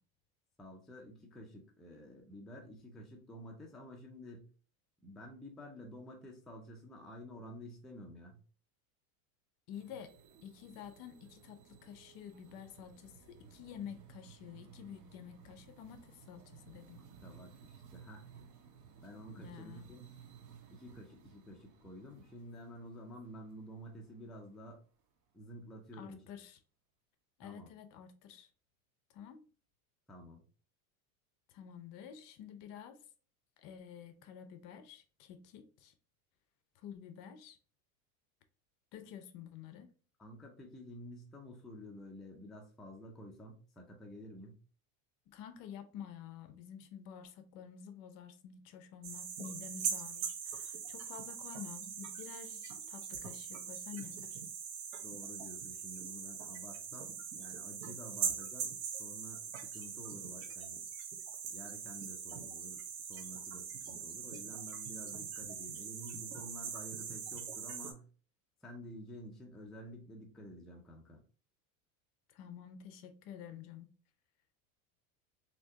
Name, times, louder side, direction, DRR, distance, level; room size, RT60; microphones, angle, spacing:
voice 1, 0.6-4.5 5.0-8.4 17.2-18.2 19.0-20.1 20.7-24.8 25.3-26.2 27.4-27.7 30.1-30.4 40.2-44.6 55.0-58.7 59.0-60.8 61.5-68.1 68.6-71.2, equal, ahead, 0.3 m, -51 dB
voice 2, 9.7-17.0 19.3-19.9 26.0-26.6 27.4-28.5 29.1-29.4 31.5-33.0 33.6-35.9 36.8-37.6 38.9-39.9 45.3-54.4 72.3-73.9, left 8 dB, 50° left, 0.6 m, -50 dB
sound 1, 9.7-25.0, right 7 dB, 45° right, 0.8 m, -58 dB
sound 2, 49.0-67.9, right 7 dB, 80° right, 1.0 m, -42 dB
3.4 x 2.8 x 2.7 m
supercardioid pair, 125°, 43 cm